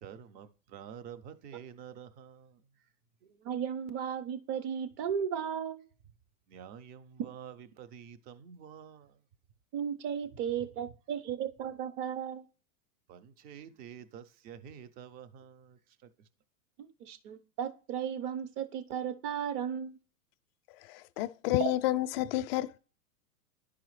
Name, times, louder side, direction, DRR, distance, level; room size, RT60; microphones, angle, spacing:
voice 1, 0.0-2.6 6.5-9.1 13.1-15.8, right 8 dB, 20° right, 0.4 m, -48 dB
voice 2, 3.4-5.8 9.7-12.4 16.8-20.0 21.6-21.7, right 8 dB, 40° right, 0.9 m, -35 dB
voice 3, 20.9-22.8, left 14 dB, 45° left, 0.4 m, -30 dB
10.5 x 4.8 x 3.1 m
hypercardioid pair, 120°, 45 cm